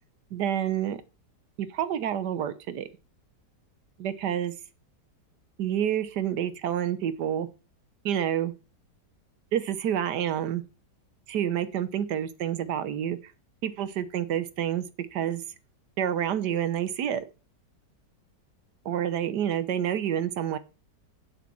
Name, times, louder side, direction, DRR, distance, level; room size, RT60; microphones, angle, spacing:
voice 1, 0.3-1.0 1.6-2.9 4.0-4.5 5.6-7.5 8.0-8.5 9.5-10.6 11.3-13.2 13.6-14.8 15.1-15.4 16.0-17.2 18.8-20.6, right 10 dB, 75° right, 13 dB, 1.5 m, -28 dB
8.2 x 7.4 x 6.2 m, 0.33 s
omnidirectional pair, 1.8 m